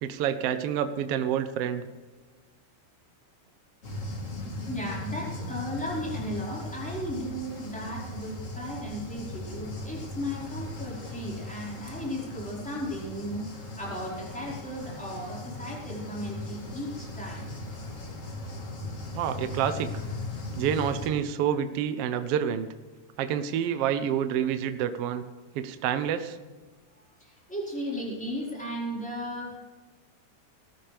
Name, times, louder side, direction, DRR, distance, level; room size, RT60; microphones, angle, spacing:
voice 1, 0.0-1.9 19.1-19.9 20.6-22.7 23.2-25.2 25.5-26.4, right 9 dB, 70° right, 9 dB, 1.4 m, -28 dB
sound 1, 3.8-21.1, left 1 dB, 35° left, 1.5 m, -38 dB
voice 2, 4.7-13.5 13.8-17.4 27.2-29.6, equal, ahead, -5 dB, 4.4 m, -35 dB
19.5 x 13.5 x 3.4 m, 1.3 s
omnidirectional pair, 3.6 m